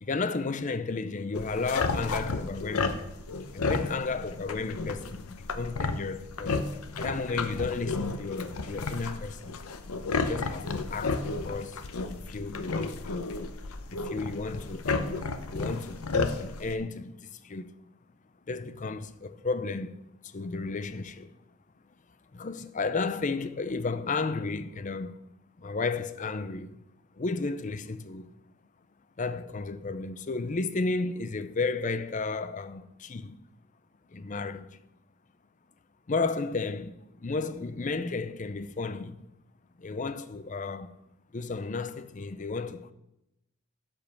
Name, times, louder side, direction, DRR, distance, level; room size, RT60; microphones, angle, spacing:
voice 1, 0.0-3.1 3.5-6.6 7.0-9.5 10.1-11.8 12.1-13.3 13.9-15.2 15.5-17.7 18.5-20.0 20.2-21.4 22.3-25.2 25.6-26.8 27.2-28.3 29.2-33.4 34.1-34.8 36.1-39.2 39.8-40.9 41.3-42.9, left 3 dB, 35° left, 0.5 m, -33 dB
sound 1, 1.3-16.7, left 3 dB, 85° left, 0.8 m, -33 dB
10.5 x 5.4 x 7.1 m
head